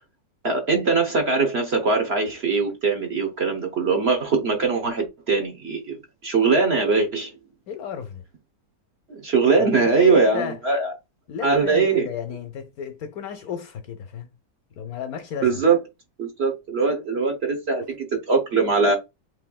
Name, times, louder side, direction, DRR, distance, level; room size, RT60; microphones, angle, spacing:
voice 1, 0.4-7.3 9.1-10.9 11.4-12.1 15.4-15.8 16.2-18.9, right 4 dB, 45° right, 1.0 m, -21 dB
voice 2, 7.7-8.2 9.7-10.6 11.3-14.3 14.7-15.6, left 7 dB, 70° left, 1.0 m, -33 dB
6.8 x 3.3 x 2.3 m
omnidirectional pair, 1.9 m